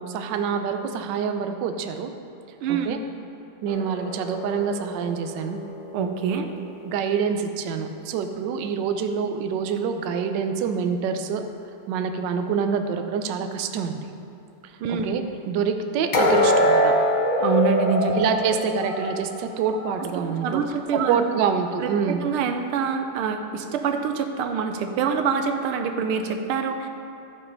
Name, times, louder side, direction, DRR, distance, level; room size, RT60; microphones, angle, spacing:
voice 1, 0.0-2.1 2.7-3.0 3.6-5.6 6.8-11.4 11.9-14.1 14.6-17.0 18.1-20.6 20.9-22.2, right 6 dB, 70° right, 6 dB, 1.2 m, -26 dB
voice 2, 2.6-3.0 5.9-6.5 14.8-15.1 17.4-18.2 20.4-21.4 21.8-26.9, right 6 dB, 90° right, 6 dB, 1.6 m, -25 dB
sound 1, 3.7-6.8 16.1-20.0 20.4-20.6 21.2-21.3, left 1 dB, 85° left, 0.4 m, -24 dB
13.0 x 5.6 x 5.3 m, 2.8 s
omnidirectional pair, 2.4 m